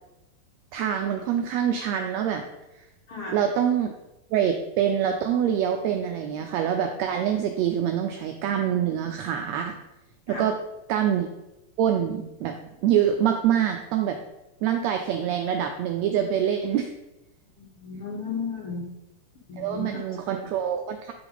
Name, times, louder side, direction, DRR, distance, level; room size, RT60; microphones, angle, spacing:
voice 1, 0.7-2.4 3.3-3.9 4.3-9.8 10.3-10.6 10.9-11.3 11.8-12.6 12.8-14.2 14.6-16.9 19.6-21.1, right 9 dB, 90° right, 5 dB, 1.5 m, -25 dB
voice 2, 17.6-18.8 19.5-20.0, left 4 dB, 50° left, -2 dB, 2.0 m, -34 dB
9.6 x 4.9 x 3.9 m, 0.94 s
omnidirectional pair, 3.7 m